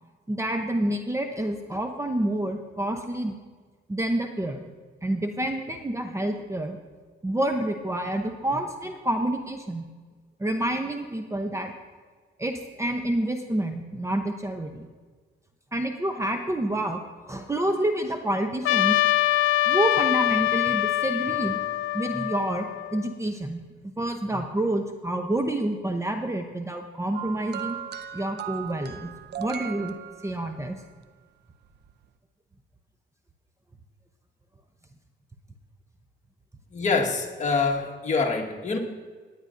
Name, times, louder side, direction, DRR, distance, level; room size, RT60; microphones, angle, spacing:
voice 1, 0.3-3.4 3.9-4.7 5.0-6.8 7.2-9.9 10.4-11.7 12.4-14.9 15.7-17.0 17.3-19.0 19.7-21.6 21.9-23.6 24.0-27.8 28.1-29.1 29.4-29.9 30.2-30.8, right 1 dB, 15° right, 5 dB, 0.8 m, -28 dB
Trumpet, 18.7-23.1, left 15 dB, 85° left, 0.4 m, -24 dB
sound 1, 27.1-30.7 31.8-31.9, right 9 dB, 55° right, 0.6 m, -37 dB
voice 2, 36.7-38.8, left 4 dB, 35° left, 0 dB, 1.6 m, -25 dB
17.5 x 9.7 x 2.6 m, 1.5 s
cardioid pair, 90°, 20 cm